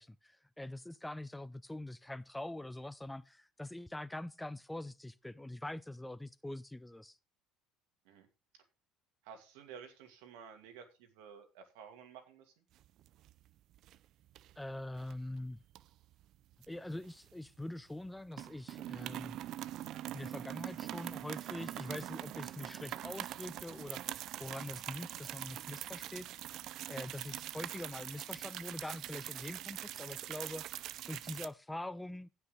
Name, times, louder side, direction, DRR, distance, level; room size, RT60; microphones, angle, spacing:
voice 1, 0.0-7.2 14.6-15.6 16.7-19.4 20.1-26.3 26.9-30.7 31.1-32.3, left 1 dB, 5° left, 0.5 m, -44 dB
voice 2, 9.2-12.5, right 7 dB, 90° right, 2.4 m, -53 dB
sound 1, 12.8-13.5 13.7-14.0 14.3-15.1 15.7-17.6 17.9-18.1 18.3-31.5, right 13 dB, 60° right, 0.5 m, -43 dB
16.0 x 5.8 x 3.9 m
cardioid pair, 110°, 0 cm